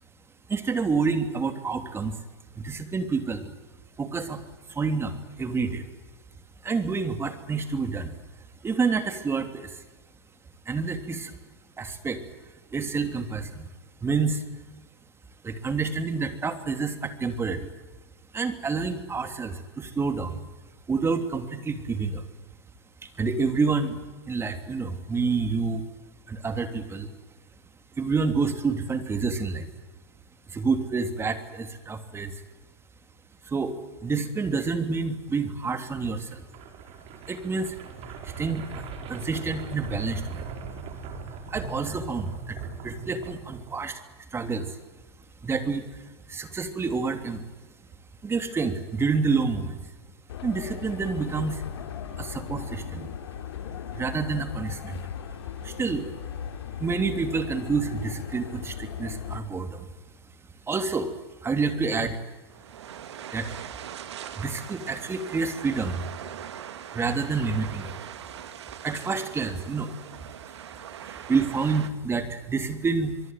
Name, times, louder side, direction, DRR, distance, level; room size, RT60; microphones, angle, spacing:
voice 1, 0.5-2.1 2.6-3.5 4.0-4.4 4.7-5.9 6.6-8.1 8.6-9.8 10.6-11.3 11.8-12.2 12.7-13.7 14.0-14.4 15.4-17.7 18.3-20.4 20.9-22.2 23.0-25.8 26.3-27.1 28.0-29.7 30.5-32.4 33.4-36.4 37.3-37.8 38.2-40.4 41.5-44.0 44.3-44.8 45.4-47.4 48.2-49.8 50.4-51.6 52.2-53.1 53.9-55.0 55.6-56.1 56.8-59.9 60.7-61.1 61.4-62.2 63.3-63.5 64.4-66.1 66.9-67.9 68.8-69.9 70.4-70.5 71.0-73.2, right 4 dB, 15° right, 8 dB, 3.2 m, -28 dB
sound 1, 36.1-44.2, right 4 dB, 45° right, 5.3 m, -39 dB
sound 2, 50.3-59.4, left 9 dB, 75° left, 3.2 m, -37 dB
sound 3, 62.5-71.9, right 9 dB, 80° right, 1.9 m, -41 dB
24.0 x 23.5 x 9.4 m, 1.2 s
hypercardioid pair, 110°, 14 cm